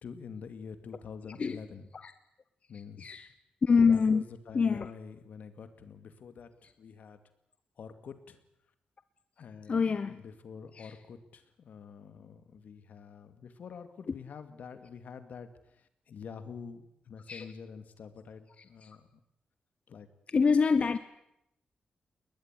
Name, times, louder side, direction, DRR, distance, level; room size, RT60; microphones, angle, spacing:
voice 1, 0.0-1.9 2.7-3.1 3.9-7.2 7.8-8.4 9.4-9.8 10.1-15.5 16.1-19.0 19.9-20.1, left 6 dB, 75° left, 2.4 m, -46 dB
voice 2, 1.2-1.6 1.9-2.1 2.7-3.3 3.6-4.9 6.6-6.7 9.6-10.2 10.7-11.0 14.0-14.2 17.3-17.5 18.6-19.0 20.3-21.0, left 5 dB, 45° left, 1.0 m, -27 dB
20.5 x 20.0 x 9.9 m
cardioid pair, 100°, 3 cm